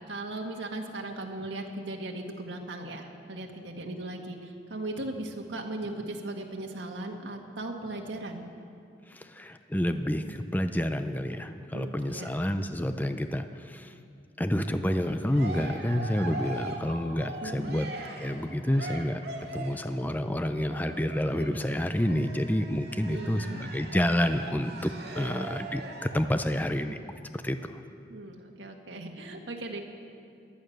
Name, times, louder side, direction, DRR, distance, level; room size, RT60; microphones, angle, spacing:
voice 1, 0.1-8.4 11.7-12.3 17.4-17.9 23.1-23.7 28.1-29.8, right 2 dB, 80° right, 2 dB, 1.6 m, -38 dB
voice 2, 9.1-13.9 14.4-17.9 18.2-19.2 19.5-27.0 27.3-27.8, equal, 10° left, 8 dB, 0.5 m, -29 dB
Cheering, 14.9-19.9 20.7-26.3, right 2 dB, 65° right, 2.1 m, -41 dB
18.0 x 11.5 x 6.5 m, 2.5 s
head